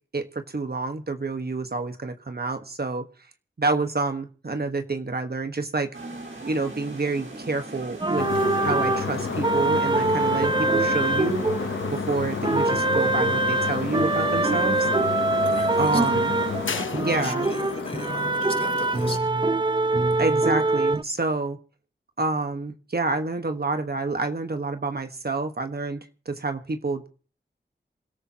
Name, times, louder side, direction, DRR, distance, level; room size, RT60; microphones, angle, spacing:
voice 1, 0.1-3.0 3.6-5.9 6.5-8.3 8.6-14.9 15.8-16.3 16.9-17.5 20.2-21.6 22.2-27.1, right 3 dB, 55° right, 7 dB, 1.4 m, -28 dB
sound 1, 5.9-16.8, right 2 dB, 80° right, 4.3 m, -40 dB
sound 2, 8.0-12.1 12.4-21.0, right 2 dB, 25° right, 0.6 m, -24 dB
sound 3, 8.2-19.2, left 5 dB, 85° left, 1.0 m, -31 dB
voice 2, 15.5-16.1 16.7-19.3, left 1 dB, 30° left, 4 dB, 3.7 m, -39 dB
27.5 x 13.5 x 2.9 m, 0.40 s
cardioid pair, 45°, 20 cm